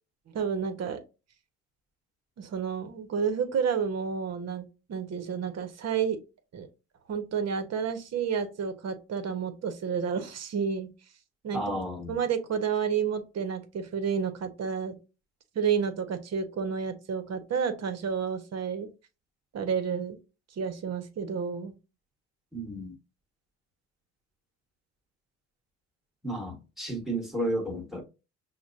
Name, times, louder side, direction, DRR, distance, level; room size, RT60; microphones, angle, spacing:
voice 1, 0.3-1.0 2.4-6.2 6.5-6.7 7.1-10.9 11.4-11.6 12.1-15.0 15.5-18.9 19.5-20.2 20.6-21.7, right 6 dB, 60° right, 0.9 m, -30 dB
voice 2, 11.5-12.2 22.5-23.0 26.2-28.0, right 1 dB, ahead, 1.4 m, -32 dB
5.9 x 2.2 x 2.6 m
cardioid pair, 90°, 30 cm